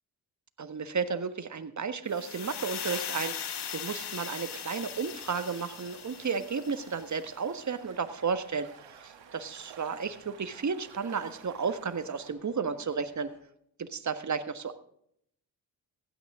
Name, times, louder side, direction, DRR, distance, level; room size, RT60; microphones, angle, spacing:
voice 1, 0.6-13.3 13.8-14.7, right 5 dB, 40° right, 10 dB, 1.4 m, -33 dB
sound 1, 2.1-7.1, left 8 dB, 60° left, 1.5 m, -39 dB
sound 2, 3.5-13.4, left 1 dB, 40° left, 6.4 m, -61 dB
sound 3, 4.5-12.3, right 9 dB, 75° right, 1.5 m, -54 dB
16.0 x 11.5 x 3.7 m, 0.70 s
supercardioid pair, 50°, 45 cm